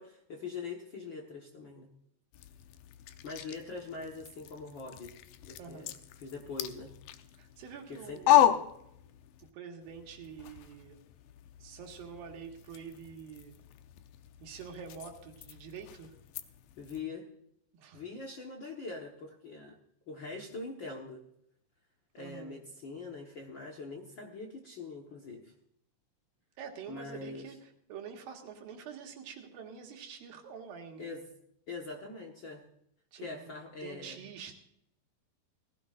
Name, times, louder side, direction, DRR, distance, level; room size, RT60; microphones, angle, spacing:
voice 1, 0.0-1.9 3.2-5.1 5.4-6.9 7.9-8.2 16.8-17.3 17.9-19.8 20.1-21.2 22.1-25.5 26.9-27.4 31.0-31.2 31.7-32.6 33.2-34.2, left 4 dB, 55° left, 1 dB, 1.3 m, -43 dB
sound 1, 2.3-9.5 9.8-17.0, left 12 dB, 85° left, 2.5 m, -34 dB
voice 2, 5.6-5.9 7.4-8.6 9.5-11.0 11.6-13.5 14.4-16.2 17.8-18.0 22.2-22.6 26.6-31.2 33.1-33.5 33.8-34.6, right 6 dB, 85° right, 2 dB, 3.5 m, -46 dB
18.0 x 16.0 x 2.5 m, 0.75 s
omnidirectional pair, 4.0 m